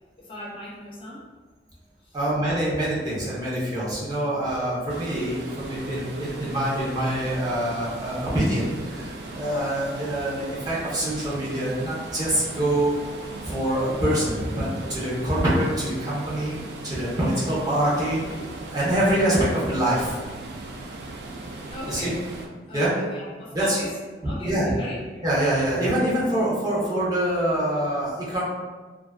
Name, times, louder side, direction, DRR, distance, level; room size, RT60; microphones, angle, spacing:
voice 1, 0.2-1.2 2.0-2.2 21.7-22.2 22.7-24.0 24.2-25.2, left 1 dB, 30° left, -5 dB, 0.5 m, -38 dB
voice 2, 2.1-12.9 13.4-16.6 16.8-20.4 21.9-22.1 22.7-22.9 23.5-23.8 24.2-24.7 25.2-28.4, right 1 dB, 20° right, -8 dB, 0.6 m, -25 dB
sound 1, 4.9-22.5, right 2 dB, 65° right, 0.3 m, -38 dB
2.4 x 2.3 x 2.2 m, 1.3 s
head